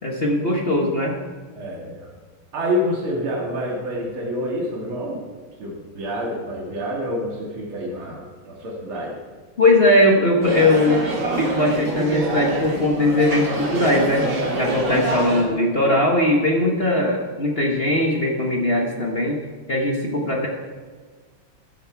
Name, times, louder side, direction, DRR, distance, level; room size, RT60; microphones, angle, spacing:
voice 1, 0.0-1.2 9.6-11.1 11.4-14.2 14.6-19.4 19.7-20.5, left 1 dB, 35° left, 0 dB, 1.2 m, -19 dB
voice 2, 1.6-2.1 2.5-5.2 5.6-9.2 14.9-15.0, equal, 70° right, -3 dB, 3.0 m, -27 dB
sound 1, 10.4-15.4, right 1 dB, 85° right, 3.5 m, -25 dB
13.0 x 11.0 x 4.7 m, 1.5 s
omnidirectional pair, 2.4 m